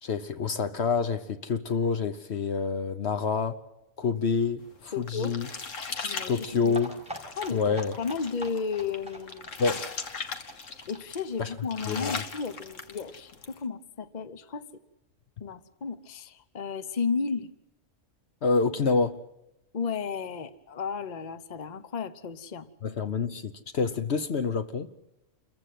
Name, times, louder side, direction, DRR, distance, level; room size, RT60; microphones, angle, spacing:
voice 1, 0.0-3.6 4.0-5.5 6.3-7.0 7.5-8.0 9.6-9.9 11.4-11.5 11.9-12.1 18.4-19.1 22.8-24.9, left 5 dB, 60° left, 1.2 m, -27 dB
sound 1, 4.7-13.6, left 5 dB, 90° left, 1.8 m, -39 dB
voice 2, 4.9-5.4 6.0-6.5 7.4-9.5 10.9-14.6 15.4-17.5 19.7-22.7, left 5 dB, 40° left, 1.0 m, -33 dB
sound 2, 6.7-12.2 12.5-12.6 12.8-12.9 13.2-13.3, right 1 dB, 5° right, 5.6 m, -43 dB
28.0 x 15.0 x 7.7 m
omnidirectional pair, 1.3 m